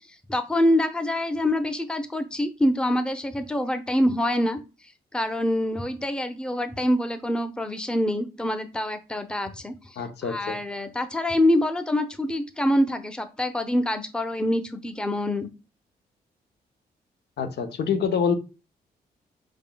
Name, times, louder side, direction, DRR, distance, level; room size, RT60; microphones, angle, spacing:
voice 1, 0.3-4.6 5.1-9.7 10.2-15.5, left 1 dB, 5° left, 8 dB, 0.6 m, -25 dB
voice 2, 10.0-10.6 17.4-18.3, left 6 dB, 75° left, 7 dB, 0.8 m, -26 dB
4.9 x 3.6 x 2.3 m, 0.30 s
cardioid pair, 60°, 18 cm